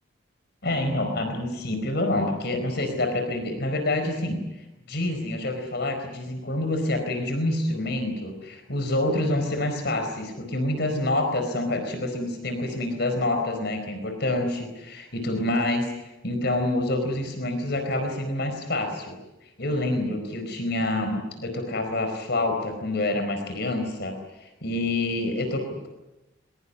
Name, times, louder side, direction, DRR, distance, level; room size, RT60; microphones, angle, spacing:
voice 1, 0.6-19.2 19.6-25.9, left 1 dB, 55° left, 5 dB, 4.6 m, -27 dB
23.0 x 22.0 x 9.7 m, 0.97 s
head